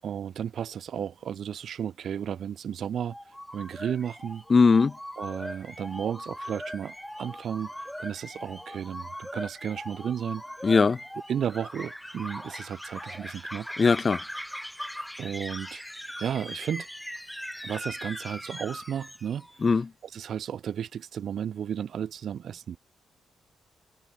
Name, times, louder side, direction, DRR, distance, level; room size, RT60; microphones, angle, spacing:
voice 1, 0.0-3.2 3.5-4.4 5.2-7.7 8.0-10.4 11.3-13.7 15.2-15.8 16.2-16.9 17.6-19.5 20.0-22.8, right 9 dB, 70° right, 7.6 m, -33 dB
sound 1, 3.1-19.6, equal, 5° left, 5.0 m, -40 dB
voice 2, 4.5-4.9 10.6-11.0 13.8-14.2 19.6-19.9, left 4 dB, 35° left, 2.7 m, -20 dB
cardioid pair, 90°, 0 cm